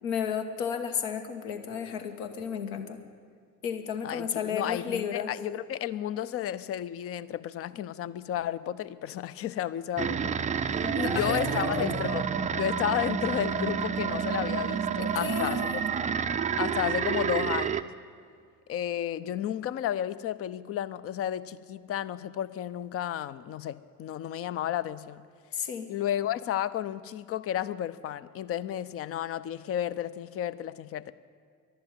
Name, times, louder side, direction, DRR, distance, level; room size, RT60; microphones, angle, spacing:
voice 1, 0.0-3.0 3.6-5.3 10.8-12.0 15.0-15.8 25.5-25.9, left 7 dB, 65° left, 7 dB, 1.4 m, -33 dB
voice 2, 4.0-10.4 10.8-15.9 16.6-17.9 18.7-25.2 25.9-31.1, left 11 dB, 30° left, 16 dB, 0.5 m, -32 dB
sound 1, 10.0-17.8, right 7 dB, 15° right, 0.5 m, -29 dB
12.0 x 11.0 x 9.2 m, 2.2 s
figure-of-eight pair, 60°, 45 cm